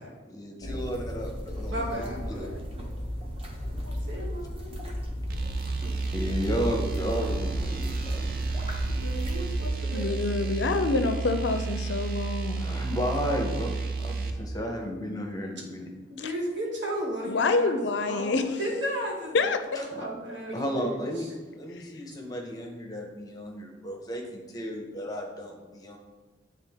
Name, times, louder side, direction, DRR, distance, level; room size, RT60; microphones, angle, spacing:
voice 1, 0.3-2.5 6.1-8.4 12.5-15.9 19.7-20.1 20.5-21.3 21.6-26.0, equal, 20° left, 1 dB, 0.7 m, -33 dB
sound 1, 0.6-9.7, equal, 30° right, 0.9 m, -35 dB
voice 2, 1.5-2.6 3.8-5.0 5.4-5.5 8.9-10.9 16.1-21.3, right 1 dB, 70° right, -2 dB, 1.5 m, -35 dB
sound 2, 5.3-14.4, right 4 dB, 50° right, 0.5 m, -31 dB
voice 3, 9.9-12.8 17.2-18.6 19.3-19.6 21.7-21.8, left 3 dB, 65° left, 9 dB, 0.4 m, -27 dB
8.1 x 3.5 x 3.5 m, 1.3 s
head